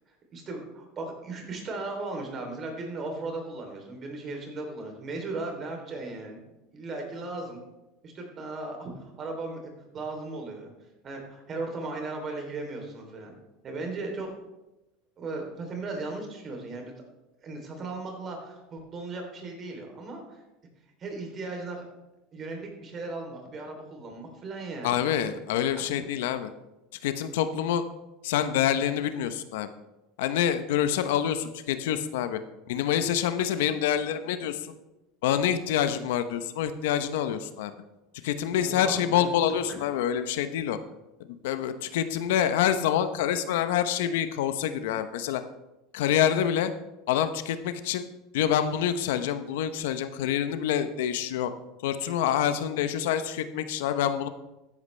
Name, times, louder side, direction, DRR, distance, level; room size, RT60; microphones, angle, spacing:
voice 1, 0.3-6.4 6.7-7.6 8.0-10.7 11.0-13.3 13.6-14.3 15.2-17.0 17.4-20.4 21.0-21.8 22.3-25.4 25.8-25.9 38.6-39.3 39.7-39.8, right 3 dB, 35° right, 3 dB, 3.1 m, -37 dB
voice 2, 24.8-26.5 27.0-27.8 28.2-29.7 30.2-32.4 32.7-34.7 35.2-37.7 38.2-40.8 41.4-45.4 45.9-46.7 47.1-48.1 48.3-51.5 51.8-54.3, left 10 dB, 80° left, 11 dB, 0.7 m, -26 dB
13.5 x 10.5 x 3.3 m, 1.0 s
supercardioid pair, 125°, 0 cm